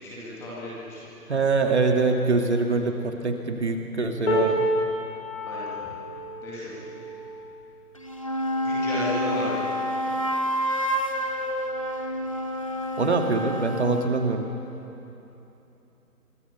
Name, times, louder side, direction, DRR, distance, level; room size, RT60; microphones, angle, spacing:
voice 1, 0.0-1.0 5.4-5.9 6.4-7.0 8.6-9.7, left 1 dB, 5° left, -7 dB, 2.1 m, -34 dB
voice 2, 1.3-4.7 13.0-14.5, right 3 dB, 45° right, 3 dB, 2.2 m, -24 dB
sound 1, 4.3-10.4 11.0-11.2 11.5-12.3 13.2-13.3, equal, 45° left, 5.2 m, -31 dB
sound 2, 7.9-14.1, equal, 20° left, 0.8 m, -28 dB
25.0 x 24.5 x 6.9 m, 3.0 s
figure-of-eight pair, 160°, 47 cm